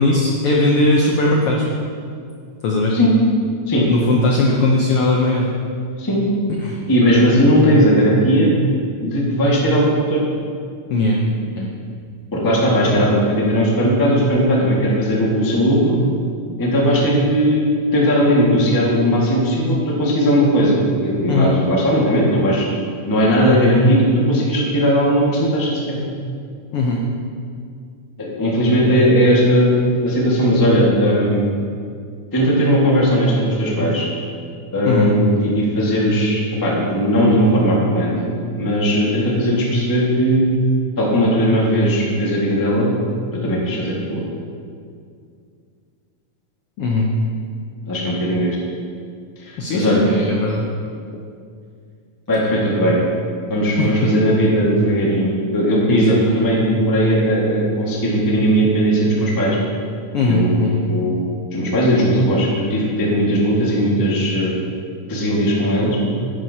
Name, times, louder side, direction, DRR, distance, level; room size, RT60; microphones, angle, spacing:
voice 1, 0.0-1.6 2.6-3.0 3.9-5.5 6.6-6.8 10.9-11.2 11.6-11.7 21.3-21.5 26.7-27.0 34.8-35.1 46.8-47.1 49.6-50.6 53.8-53.9 55.9-56.4 60.1-60.9, left 2 dB, 90° left, -1 dB, 1.2 m, -18 dB
voice 2, 6.9-8.5 9.0-10.3 12.3-16.0 16.6-22.6 23.1-26.0 28.2-31.5 32.3-34.1 34.7-40.4 41.0-42.9 43.4-44.3 47.9-48.6 49.4-50.0 52.3-53.0 53.5-59.6 60.2-64.5 65.1-66.0, equal, 20° left, -5 dB, 0.5 m, -17 dB
11.0 x 9.4 x 2.8 m, 2.3 s
omnidirectional pair, 3.6 m